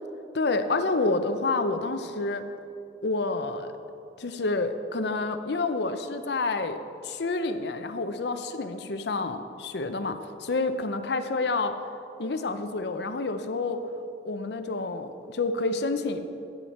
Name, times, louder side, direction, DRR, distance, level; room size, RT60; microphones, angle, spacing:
voice 1, 0.3-2.5 3.0-3.7 4.2-11.8 12.2-13.8 14.2-16.2, left 3 dB, 70° left, 9 dB, 0.6 m, -28 dB
12.5 x 9.5 x 4.2 m, 2.8 s
head